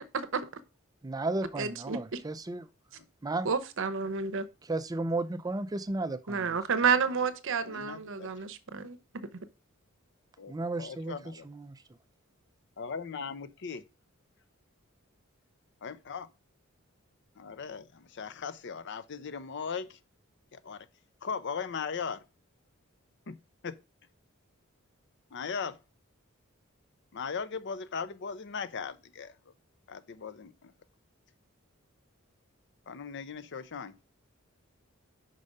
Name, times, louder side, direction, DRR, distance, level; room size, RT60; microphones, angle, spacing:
voice 1, 0.1-0.4 1.6-2.2 3.4-4.5 6.3-9.0, right 5 dB, 65° right, 0.8 m, -30 dB
voice 2, 1.0-2.7 3.2-3.5 4.6-6.6 10.5-11.8, right 2 dB, 20° right, 0.4 m, -34 dB
voice 3, 7.6-8.3 10.4-10.5 10.8-11.5 12.8-13.8 15.8-16.3 17.4-20.0 20.5-20.9 21.2-22.2 23.3-23.4 23.6-23.7 25.3-25.8 27.1-29.5 29.9-30.7 32.9-33.9, left 5 dB, 55° left, 0.6 m, -38 dB
5.4 x 5.0 x 5.3 m
head